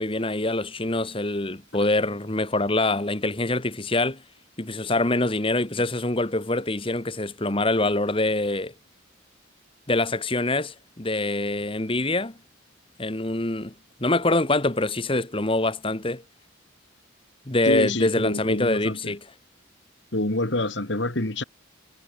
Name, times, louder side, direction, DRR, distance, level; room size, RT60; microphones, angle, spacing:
voice 1, 0.0-4.2 4.6-8.7 9.9-12.3 13.0-13.7 14.0-16.2 17.5-19.2, left 2 dB, 25° left, 1.6 m, -25 dB
voice 2, 17.6-19.1 20.1-21.4, left 2 dB, 60° left, 2.5 m, -27 dB
head